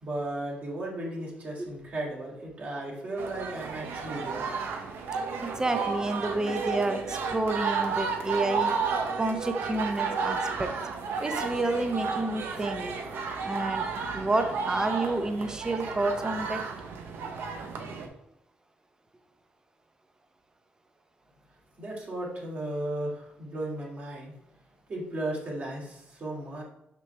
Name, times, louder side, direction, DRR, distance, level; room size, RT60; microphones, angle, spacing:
voice 1, 0.0-4.5 21.8-24.3 24.9-26.6, right 1 dB, 45° right, -3 dB, 2.5 m, -35 dB
sound 1, 3.2-18.1, right 5 dB, 80° right, 0.9 m, -32 dB
voice 2, 5.4-8.7 9.2-10.7 11.2-13.0 13.4-13.8 14.1-16.6, right 2 dB, 20° right, 7 dB, 0.8 m, -29 dB
6.0 x 5.7 x 3.3 m, 0.81 s
cardioid pair, 105°, 4 cm